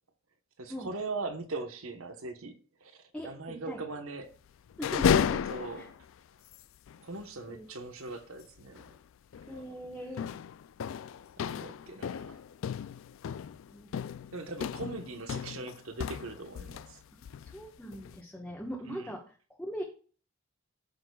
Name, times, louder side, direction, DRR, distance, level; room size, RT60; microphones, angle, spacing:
voice 1, 0.6-4.4 4.8-5.1 5.5-6.0 7.0-9.0 9.5-9.6 11.4-12.4 14.3-17.0 18.9-19.1, right 3 dB, 70° right, 1.1 m, -41 dB
voice 2, 3.1-3.8 4.8-5.4 5.8-5.9 7.5-7.7 9.5-10.3 13.7-13.9 17.4-19.8, equal, 5° left, 1.2 m, -41 dB
sound 1, 4.7-6.1 6.5-6.6 6.9-7.0 8.7-9.0 9.3-9.6 10.2-16.9 17.2-18.2, left 7 dB, 65° left, 0.3 m, -33 dB
14.5 x 6.7 x 2.3 m
head